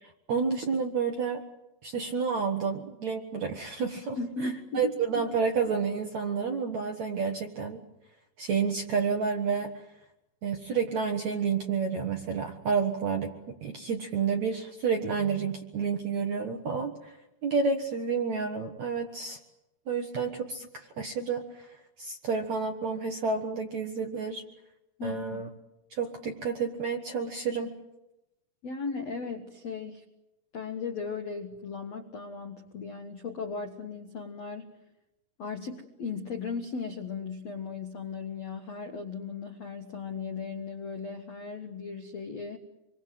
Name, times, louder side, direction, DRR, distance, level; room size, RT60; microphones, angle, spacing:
voice 1, 0.0-1.4 1.8-7.8 8.4-9.8 10.4-13.3 13.6-19.4 19.9-24.4 25.0-25.5 25.9-27.7, right 5 dB, 65° right, 3 dB, 1.9 m, -30 dB
voice 2, 4.2-5.2 25.0-25.4 28.6-30.0 30.5-34.7 35.4-42.6, left 4 dB, 70° left, 5 dB, 1.5 m, -37 dB
26.5 x 23.0 x 7.7 m, 0.93 s
omnidirectional pair, 5.3 m